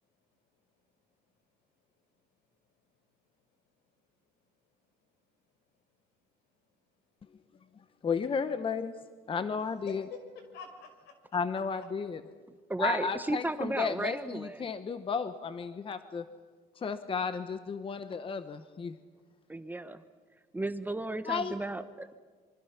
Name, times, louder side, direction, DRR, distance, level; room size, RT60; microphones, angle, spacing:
voice 1, 0.3-0.9 1.3-1.4 2.6-3.0 3.5-3.6 4.4-4.9 5.3-5.4 5.7-6.0 6.6-8.0 9.9-11.2, left 6 dB, 80° left, 5 dB, 5.3 m, -51 dB
voice 2, 8.0-8.9 9.3-10.0 11.3-12.2 12.8-16.3 16.8-18.9 21.3-21.5, left 5 dB, 30° left, 11 dB, 1.0 m, -33 dB
voice 3, 12.7-14.7 19.5-20.0 20.5-22.1, right 2 dB, 10° right, 10 dB, 1.1 m, -34 dB
27.0 x 24.5 x 6.0 m, 1.5 s
cardioid pair, 110°, 17 cm